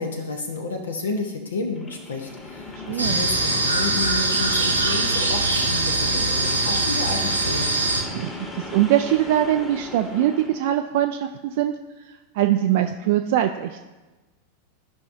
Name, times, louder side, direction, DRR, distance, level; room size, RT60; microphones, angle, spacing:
voice 1, 0.0-7.7, left 3 dB, 70° left, 4 dB, 0.8 m, -31 dB
sound 1, 1.7-10.6, left 2 dB, 20° left, 1.3 m, -37 dB
voice 2, 2.9-3.2 8.1-11.7 12.3-13.8, right 12 dB, 50° right, 6 dB, 0.3 m, -22 dB
sound 2, 3.0-8.0, right 2 dB, 85° right, 1.0 m, -22 dB
13.0 x 5.5 x 2.6 m, 1.2 s
figure-of-eight pair, 90°, 0 cm